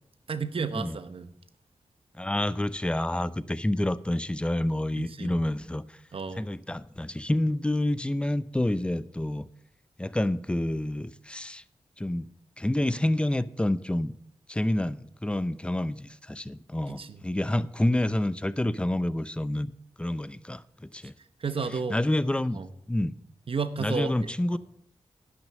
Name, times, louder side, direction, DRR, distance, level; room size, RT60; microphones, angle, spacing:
voice 1, 0.3-1.3 5.0-5.3 6.1-6.5 16.9-17.2 21.4-22.0 22.5-22.7 23.5-24.1, right 5 dB, 60° right, 12 dB, 0.9 m, -32 dB
voice 2, 2.2-6.0 6.4-9.5 10.0-11.6 12.0-12.3 12.6-14.1 14.5-19.7 20.0-21.1 21.9-22.6 22.9-23.2 23.8-24.6, left 1 dB, 10° left, 16 dB, 0.5 m, -28 dB
10.5 x 6.3 x 7.4 m, 0.70 s
cardioid pair, 70°, 11 cm